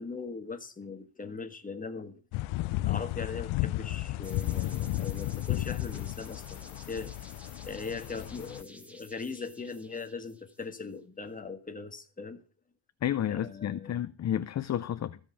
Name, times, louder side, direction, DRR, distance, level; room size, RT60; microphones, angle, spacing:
voice 1, 0.0-2.2 2.7-7.3 7.6-12.4 13.3-14.0, left 4 dB, 15° left, 1.5 m, -40 dB
sound 1, 2.3-8.6, left 17 dB, 90° left, 0.6 m, -33 dB
sound 2, 4.2-10.9, equal, 5° right, 1.3 m, -52 dB
voice 2, 13.0-15.2, left 10 dB, 35° left, 0.6 m, -31 dB
15.0 x 5.2 x 8.4 m
cardioid pair, 150°, 47 cm